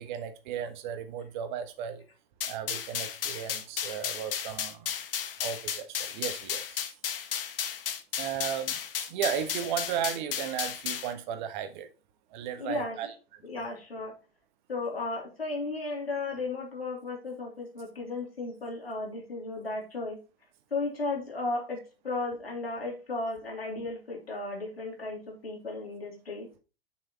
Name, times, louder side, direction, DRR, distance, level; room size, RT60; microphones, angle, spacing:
voice 1, 0.0-2.0 2.4-4.9 5.4-6.8 8.2-11.9 12.3-13.1, right 9 dB, 50° right, 1.3 m, -35 dB
sound 1, 2.4-11.1, left 8 dB, 65° left, 1.2 m, -34 dB
voice 2, 12.6-13.1 13.4-14.1 14.7-20.2 20.7-21.8 22.0-26.5, left 3 dB, 85° left, 3.1 m, -35 dB
6.5 x 6.2 x 4.3 m
figure-of-eight pair, 95°, 29 cm